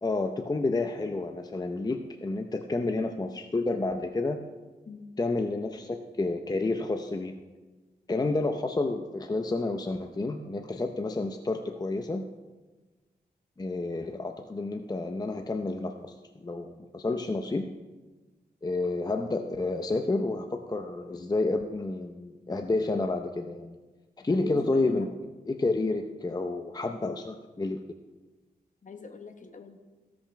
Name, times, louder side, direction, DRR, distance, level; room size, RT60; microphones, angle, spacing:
voice 1, 0.0-4.4 5.2-7.4 8.1-12.3 13.6-16.1 16.4-17.7 18.6-23.8 24.2-25.1 25.5-27.8, left 2 dB, 25° left, 5 dB, 0.6 m, -30 dB
voice 2, 24.3-25.1 28.8-29.8, left 3 dB, 50° left, 6 dB, 1.3 m, -41 dB
15.5 x 6.0 x 5.7 m, 1.2 s
wide cardioid pair, 95°, 17 cm